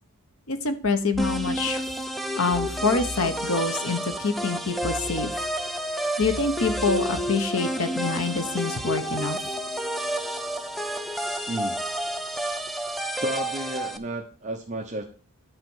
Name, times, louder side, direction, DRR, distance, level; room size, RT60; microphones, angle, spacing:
voice 1, 0.5-1.8 2.4-5.3 6.2-9.4, left 3 dB, 65° left, 8 dB, 1.1 m, -26 dB
sound 1, 1.1-2.1 2.5-4.0 4.8-5.8 6.2-7.7 8.1-8.4, left 1 dB, 85° left, 2.1 m, -40 dB
sound 2, 1.2-14.0, equal, ahead, 0.6 m, -30 dB
voice 2, 11.5-11.8 12.2-12.6 13.2-15.0, right 1 dB, 35° right, 1 dB, 0.9 m, -32 dB
10.0 x 4.3 x 6.3 m, 0.39 s
head